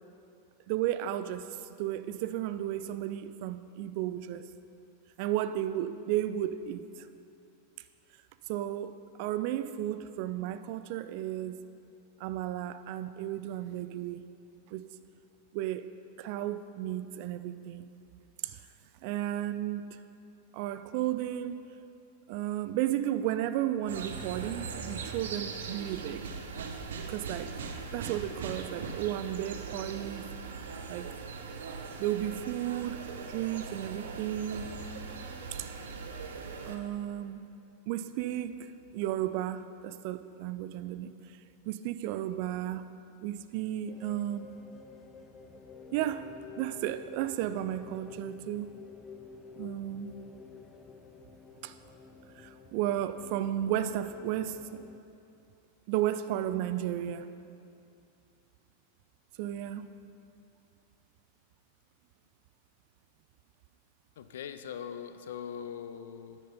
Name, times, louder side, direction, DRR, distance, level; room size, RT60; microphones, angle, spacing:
voice 1, 0.7-4.5 5.2-6.8 8.5-11.7 12.2-14.3 14.7-14.9 15.5-15.8 16.2-17.9 18.4-18.6 19.0-20.0 20.5-21.6 22.3-26.2 27.1-27.5 27.9-30.3 30.9-31.1 32.0-33.0 33.3-34.7 35.5-35.7 36.6-37.5 37.9-41.1 41.7-42.9 43.2-44.5 45.9-46.3 46.6-48.7 49.6-50.1 51.6-51.8 52.4-54.6 55.9-57.3 59.4-59.9, right 12 dB, 45° right, 12 dB, 0.4 m, -33 dB
sound 1, 23.9-36.8, right 5 dB, 60° right, 0.8 m, -40 dB
sound 2, 43.9-55.0, left 5 dB, 20° left, 0.9 m, -50 dB
voice 2, 64.2-66.4, left 8 dB, 60° left, 10 dB, 0.5 m, -41 dB
9.9 x 9.4 x 5.4 m, 2.6 s
figure-of-eight pair, 90°, 0 cm